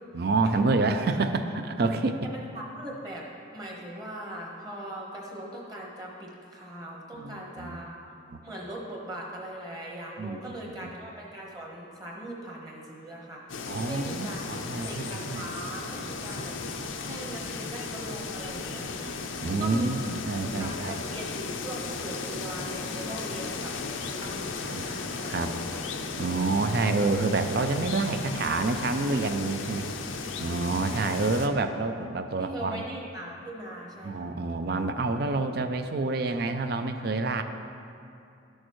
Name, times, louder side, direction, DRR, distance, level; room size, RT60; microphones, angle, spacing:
voice 1, 0.1-2.2 7.1-7.8 8.3-8.4 10.2-10.4 10.8-10.9 13.7-15.5 19.4-21.1 24.7-24.9 25.2-25.5 26.2-29.9 30.4-32.8 34.0-37.4, right 3 dB, 50° right, 8 dB, 0.4 m, -28 dB
voice 2, 2.2-8.0 8.4-13.4 13.8-14.4 14.8-16.6 16.9-19.1 19.6-19.9 20.6-23.7 24.2-25.0 30.8-31.7 32.4-34.3, right 1 dB, 20° right, -2 dB, 1.1 m, -40 dB
sound 1, 13.5-31.5, left 4 dB, 85° left, 0.6 m, -35 dB
12.0 x 6.4 x 3.1 m, 2.6 s
head